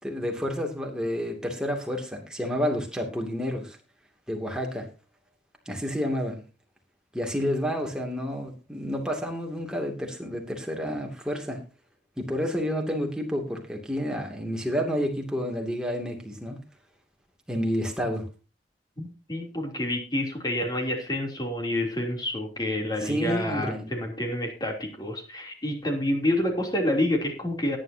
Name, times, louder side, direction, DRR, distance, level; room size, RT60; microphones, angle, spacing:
voice 1, 0.0-3.8 4.3-4.9 5.7-6.4 7.1-11.6 12.2-16.6 17.5-18.2 23.0-23.9, equal, 5° right, 1 dB, 2.5 m, -30 dB
voice 2, 19.0-27.8, left 1 dB, 25° left, 2 dB, 3.2 m, -28 dB
18.5 x 10.0 x 2.8 m, 0.32 s
head